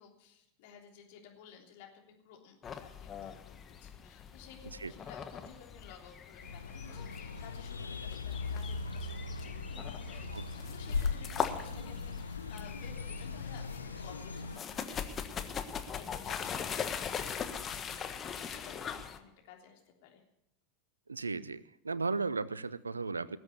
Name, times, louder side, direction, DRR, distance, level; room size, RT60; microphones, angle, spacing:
voice 1, 0.0-9.1 9.4-20.2, left 7 dB, 60° left, 1 dB, 3.4 m, -55 dB
sound 1, 2.6-19.2, left 7 dB, 30° left, 1.4 m, -41 dB
sound 2, 6.4-14.6, left 4 dB, 90° left, 0.8 m, -39 dB
voice 2, 21.1-23.4, right 4 dB, 90° right, 20 dB, 0.6 m, -35 dB
19.0 x 8.0 x 8.3 m, 0.83 s
figure-of-eight pair, 85°, 0 cm